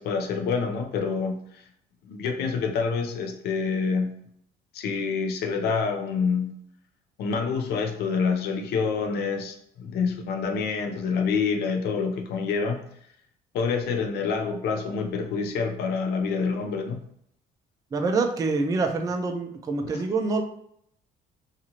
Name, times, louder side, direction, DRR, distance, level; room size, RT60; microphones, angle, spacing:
voice 1, 0.0-1.6 2.1-4.2 4.7-6.5 7.2-12.8 13.5-17.0 19.8-20.0, left 5 dB, 70° left, 5 dB, 0.5 m, -27 dB
voice 2, 17.9-20.4, right 3 dB, 20° right, 4 dB, 0.3 m, -26 dB
2.6 x 2.4 x 2.9 m, 0.70 s
cardioid pair, 110°, 17 cm